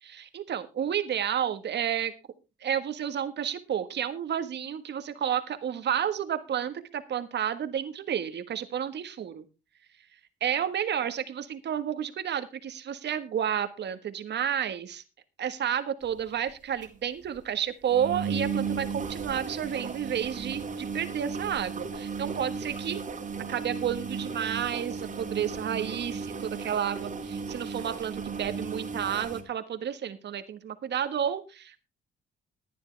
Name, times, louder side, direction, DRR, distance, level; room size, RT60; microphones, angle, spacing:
voice 1, 0.2-2.1 2.6-9.4 10.4-15.0 15.4-23.0 23.5-31.8, right 9 dB, 60° right, 11 dB, 1.5 m, -31 dB
sound 1, 16.0-16.2 16.5-16.6 16.8-16.9 17.2-17.4 17.8-29.4, right 5 dB, 40° right, 2.4 m, -35 dB
15.0 x 10.5 x 3.4 m, 0.28 s
cardioid pair, 90°, 20 cm